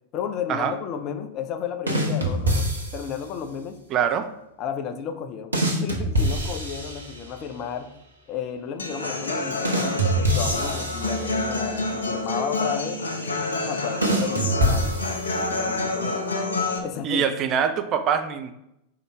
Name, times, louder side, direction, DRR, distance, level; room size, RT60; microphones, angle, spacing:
voice 1, 0.1-2.7 2.9-3.8 4.6-7.9 8.3-13.0 13.7-16.5 16.8-17.2, left 7 dB, 35° left, 6 dB, 0.6 m, -33 dB
sound 1, 1.9-3.3 5.5-7.5 9.6-11.8 14.0-15.6, right 1 dB, 80° right, 1.1 m, -25 dB
voice 2, 3.9-4.3 17.0-18.5, right 7 dB, 35° right, 8 dB, 0.6 m, -24 dB
Human voice / Acoustic guitar, 8.8-16.8, left 2 dB, 75° left, 0.8 m, -28 dB
5.3 x 3.8 x 4.7 m, 0.82 s
figure-of-eight pair, 90°, 0 cm